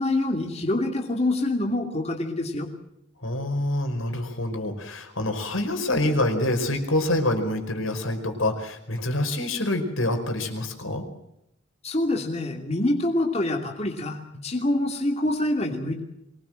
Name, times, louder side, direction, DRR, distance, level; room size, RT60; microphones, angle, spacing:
voice 1, 0.0-2.7 11.8-16.0, left 1 dB, 30° left, 2 dB, 2.8 m, -26 dB
voice 2, 3.2-11.0, left 1 dB, 85° left, 5 dB, 5.1 m, -26 dB
24.0 x 19.5 x 7.7 m, 0.80 s
head